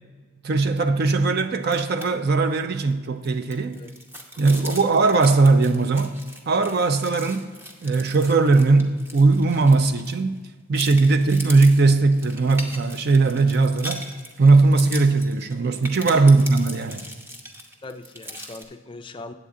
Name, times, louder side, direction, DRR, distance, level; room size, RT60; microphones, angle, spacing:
voice 1, 0.4-3.8 4.4-6.2 6.5-7.5 7.8-10.4 10.7-14.0 14.4-17.0, right 3 dB, 50° right, 9 dB, 0.4 m, -19 dB
sound 1, 1.6-2.1 2.4-2.5 2.9-10.4 10.7-18.6, equal, 10° right, 0.7 m, -39 dB
voice 2, 17.8-19.3, left 3 dB, 25° left, 7 dB, 0.4 m, -40 dB
8.4 x 8.3 x 3.7 m, 1.4 s
head